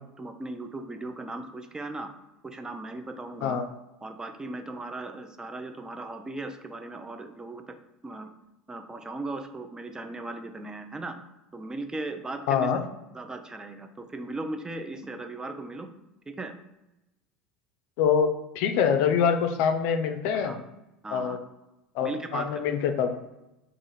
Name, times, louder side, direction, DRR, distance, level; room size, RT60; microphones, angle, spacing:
voice 1, 0.2-2.1 2.4-3.6 4.0-7.7 8.0-8.3 8.7-11.2 11.5-12.7 13.1-15.9 16.3-16.5 20.3-20.6 21.0-21.4 22.0-22.5, right 2 dB, 15° right, 7 dB, 0.5 m, -37 dB
voice 2, 12.5-12.8 18.0-20.6 21.1-21.4 21.9-23.2, left 7 dB, 65° left, 7 dB, 0.5 m, -25 dB
3.6 x 2.5 x 4.1 m, 0.94 s
hypercardioid pair, 75°, 4 cm